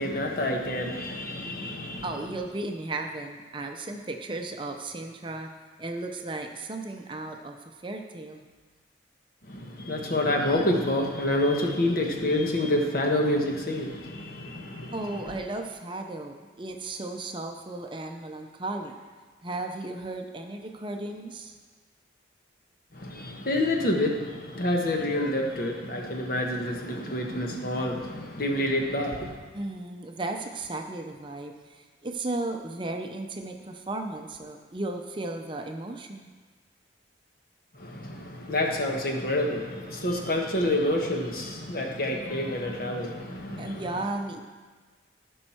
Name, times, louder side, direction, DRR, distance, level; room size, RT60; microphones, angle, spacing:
voice 1, 0.0-2.0 9.5-15.0 22.9-29.4 37.8-43.8, left 1 dB, 50° left, 1 dB, 1.3 m, -28 dB
voice 2, 2.0-5.5 5.8-7.6 7.8-8.4 14.9-19.0 19.4-21.6 29.5-36.3 43.6-44.4, right 2 dB, 25° right, 4 dB, 0.6 m, -35 dB
16.0 x 5.5 x 4.4 m, 1.4 s
head